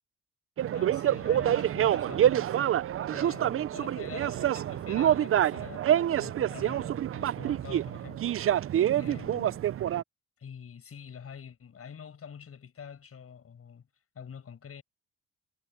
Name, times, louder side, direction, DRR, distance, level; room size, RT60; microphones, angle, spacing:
sound 1, 0.6-10.0, right 11 dB, 45° right, 0.5 m, -27 dB
voice 1, 0.7-2.8 3.1-9.6 10.4-13.9 14.1-14.8, left 7 dB, 50° left, 7.2 m, -46 dB
cardioid pair, 90°, 30 cm